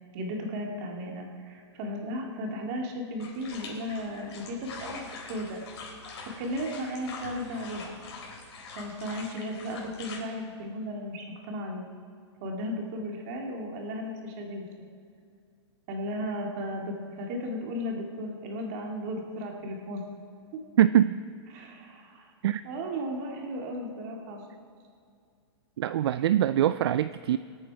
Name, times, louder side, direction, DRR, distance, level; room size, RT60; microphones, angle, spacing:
voice 1, 0.1-5.6 6.4-7.9 8.7-11.9 12.4-14.9 15.9-20.0 20.5-20.6 21.5-22.3 22.6-24.4, equal, 35° right, 1 dB, 2.2 m, -35 dB
sound 1, 3.2-10.2, left 4 dB, 60° left, 4.1 m, -43 dB
voice 2, 20.8-21.2 22.4-22.6 25.8-27.4, right 11 dB, 60° right, 14 dB, 0.4 m, -23 dB
24.5 x 8.8 x 4.7 m, 2.3 s
hypercardioid pair, 165°, 15 cm